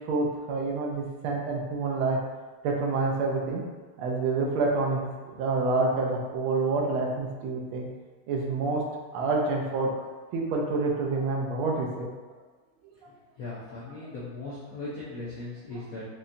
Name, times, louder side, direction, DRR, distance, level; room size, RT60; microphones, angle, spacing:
voice 1, 0.1-2.2 2.6-3.6 4.0-7.9 8.3-8.8 9.1-10.1 10.3-12.1, right 3 dB, 80° right, 0 dB, 1.5 m, -27 dB
voice 2, 13.4-16.0, left 2 dB, 80° left, -7 dB, 0.7 m, -38 dB
5.5 x 2.2 x 2.5 m, 1.3 s
omnidirectional pair, 2.3 m